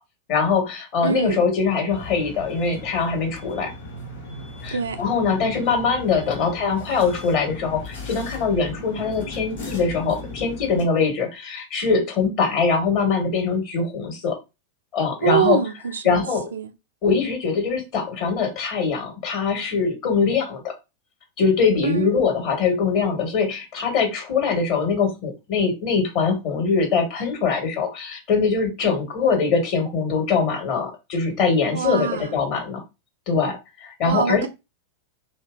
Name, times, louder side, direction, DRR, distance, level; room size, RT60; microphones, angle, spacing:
voice 1, 0.3-3.7 4.6-14.4 14.9-15.6 16.0-16.5 17.0-20.7 21.4-32.8 33.3-34.5, left 5 dB, 45° left, 1.2 m, -22 dB
voice 2, 1.0-1.4 4.7-5.0 15.2-16.2 16.5-16.7 21.8-22.1 31.7-32.3 34.0-34.5, right 7 dB, 70° right, 0.4 m, -24 dB
sound 1, 1.9-10.8, left 2 dB, 65° left, 1.2 m, -37 dB
2.9 x 2.5 x 2.4 m
figure-of-eight pair, 90°, 0 cm